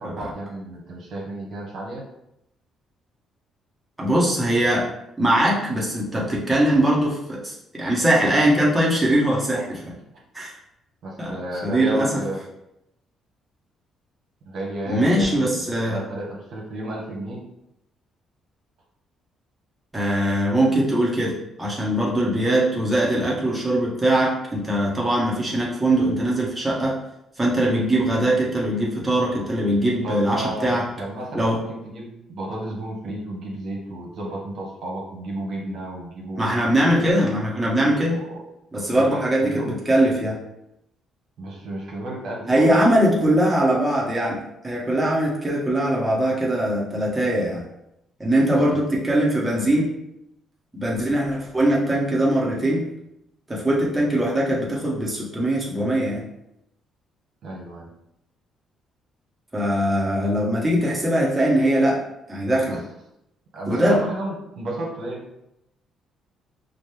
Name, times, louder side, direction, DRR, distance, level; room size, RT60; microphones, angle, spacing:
voice 1, 0.0-2.0 11.0-12.4 14.5-17.4 30.0-36.5 38.1-38.4 38.7-39.8 41.4-43.1 48.5-48.9 57.4-57.9 62.5-62.8 63.5-65.2, right 1 dB, 65° right, -3 dB, 1.1 m, -32 dB
voice 2, 4.0-4.9 5.2-9.8 10.3-10.5 11.2-11.4 11.6-12.1 14.9-16.0 19.9-27.0 27.4-30.8 31.3-31.6 36.3-38.2 38.7-40.4 42.5-44.4 44.6-47.6 48.2-49.9 50.7-52.8 53.5-56.2 59.5-62.0 62.3-62.8 63.7-64.0, right 1 dB, 15° right, -5 dB, 1.2 m, -21 dB
5.1 x 2.1 x 3.3 m, 0.84 s
cardioid pair, 80°, 0 cm